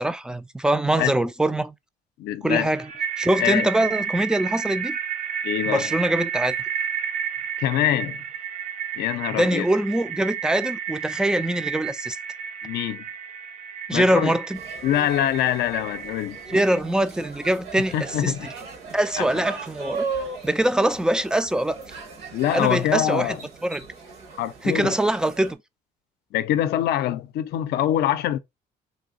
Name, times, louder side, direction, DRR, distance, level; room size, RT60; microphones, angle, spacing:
voice 1, 0.0-1.7 2.4-2.9 3.2-5.0 5.7-6.6 9.3-12.2 13.9-14.6 16.5-18.3 18.9-20.1 20.4-21.8 22.5-23.4 23.6-23.8 24.6-25.6, right 1 dB, 5° right, 0.3 m, -23 dB
voice 2, 2.2-2.7 3.4-3.7 5.4-5.9 7.6-8.2 9.0-9.7 12.6-13.0 13.9-14.3 14.8-16.4 17.9-18.5 19.2-19.4 22.3-23.4 24.4-24.9 26.3-28.4, left 12 dB, 70° left, 0.5 m, -24 dB
sound 1, 2.5-16.8, right 7 dB, 45° right, 0.6 m, -31 dB
sound 2, 14.5-25.5, right 4 dB, 70° right, 1.6 m, -37 dB
3.3 x 2.7 x 3.7 m
cardioid pair, 110°, 17 cm